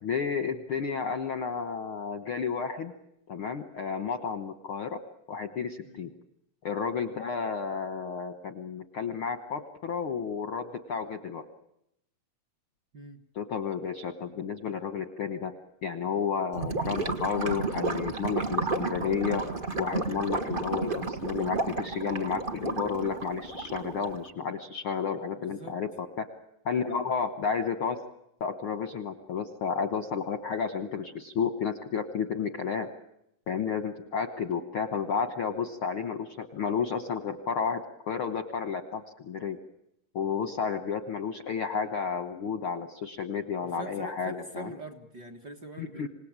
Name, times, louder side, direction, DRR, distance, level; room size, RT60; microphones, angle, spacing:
voice 1, 0.0-2.9 3.3-5.0 5.3-6.1 6.6-11.4 13.3-15.5 15.8-19.4 19.8-25.9 26.2-26.3 26.6-28.0 28.4-32.9 33.5-37.8 38.1-39.6 40.1-44.7 45.8-46.1, left 6 dB, 65° left, 9 dB, 1.4 m, -31 dB
Gurgling / Liquid, 16.5-24.3, right 3 dB, 60° right, 0.5 m, -32 dB
voice 2, 25.4-25.8 43.7-46.1, right 2 dB, 40° right, 6 dB, 1.6 m, -44 dB
27.0 x 18.5 x 8.8 m, 0.80 s
omnidirectional pair, 4.0 m